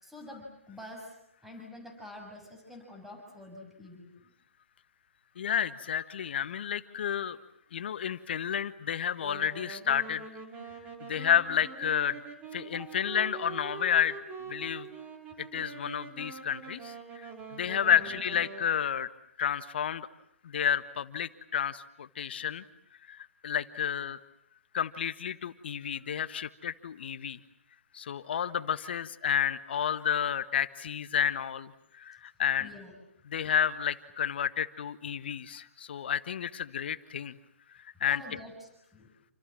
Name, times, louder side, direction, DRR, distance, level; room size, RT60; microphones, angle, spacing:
voice 1, 0.0-1.1 1.4-4.1 12.8-12.9 17.9-18.2 32.6-32.9 38.0-39.1, left 1 dB, 5° right, 1 dB, 6.7 m, -47 dB
voice 2, 5.4-7.4 7.7-10.3 11.0-12.2 12.5-14.2 14.5-14.9 15.4-19.1 19.4-20.1 20.4-22.6 23.1-24.2 24.7-27.4 27.9-32.7 33.3-37.4 38.0-38.2, left 8 dB, 50° left, 13 dB, 1.6 m, -31 dB
Wind instrument woodwind instrument, 9.2-18.7, right 5 dB, 20° right, 5.0 m, -44 dB
29.0 x 26.5 x 7.6 m, 0.75 s
figure-of-eight pair, 130°, 7 cm